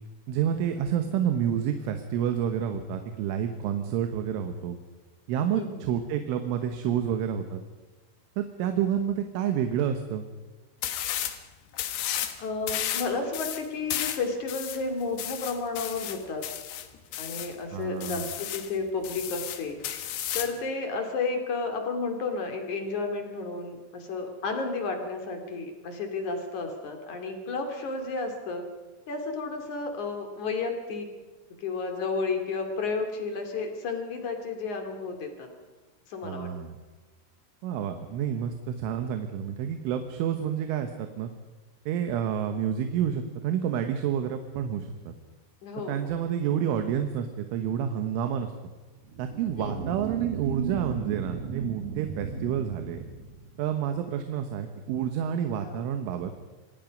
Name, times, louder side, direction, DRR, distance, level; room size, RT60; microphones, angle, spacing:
voice 1, 0.3-4.8 5.3-7.6 8.4-10.3 17.7-18.3 36.2-36.8 37.6-41.3 41.9-45.1 45.9-48.5 49.2-53.0 53.6-56.3, right 9 dB, 90° right, 7 dB, 3.8 m, -29 dB
voice 2, 5.5-5.8 12.4-16.4 17.2-19.8 20.3-28.7 29.1-31.1 31.6-35.5 36.1-36.5 45.6-46.1 49.6-49.9 55.6-55.8, left 4 dB, 45° left, 5 dB, 3.4 m, -32 dB
sound 1, 10.8-11.4 11.7-12.4 12.7-17.5 18.0-18.7 19.0-20.6, left 11 dB, 65° left, 3.0 m, -33 dB
sound 2, 49.0-54.0, right 6 dB, 75° right, 1.5 m, -36 dB
26.5 x 21.0 x 5.3 m, 1.2 s
omnidirectional pair, 5.5 m